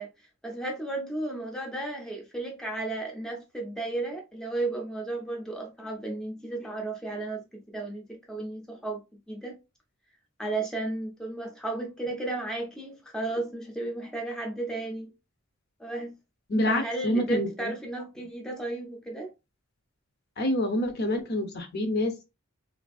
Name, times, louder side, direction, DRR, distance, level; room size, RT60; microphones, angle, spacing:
voice 1, 0.0-9.0 9.3-9.6 10.4-15.1 15.8-16.2 16.7-19.3, right 2 dB, 5° left, 0.5 m, -34 dB
voice 2, 16.5-17.7 20.4-22.2, left 1 dB, 50° left, 0.6 m, -27 dB
3.3 x 2.5 x 2.3 m
head